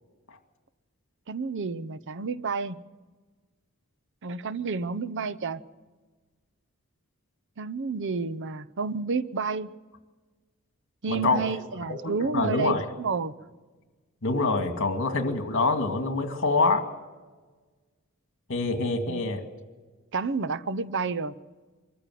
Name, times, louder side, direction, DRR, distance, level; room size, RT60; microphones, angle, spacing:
voice 1, 1.3-2.8 4.2-5.6 7.6-9.7 11.0-13.4 14.8-14.9 19.1-19.2 20.1-21.3, right 4 dB, 60° right, 0.7 m, -30 dB
voice 2, 11.1-11.4 11.9-12.0 12.3-12.8 14.2-16.8 18.5-19.4, left 3 dB, 60° left, 2.3 m, -25 dB
24.5 x 14.0 x 7.7 m
head